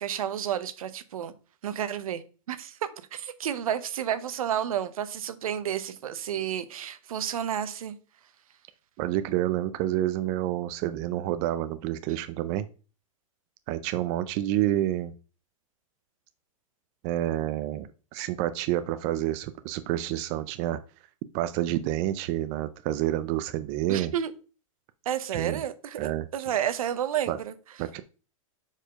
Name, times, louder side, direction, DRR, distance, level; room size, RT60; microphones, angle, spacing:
voice 1, 0.0-1.3 1.6-7.9 23.9-24.3 25.1-27.5, right 9 dB, 85° right, 0.8 m, -31 dB
voice 2, 9.0-12.7 13.7-15.1 17.0-20.8 21.3-24.1 25.3-25.6 26.0-26.3 27.3-27.4 27.8-28.0, right 13 dB, 40° right, 0.5 m, -28 dB
4.9 x 4.4 x 5.1 m
hypercardioid pair, 135°, 18 cm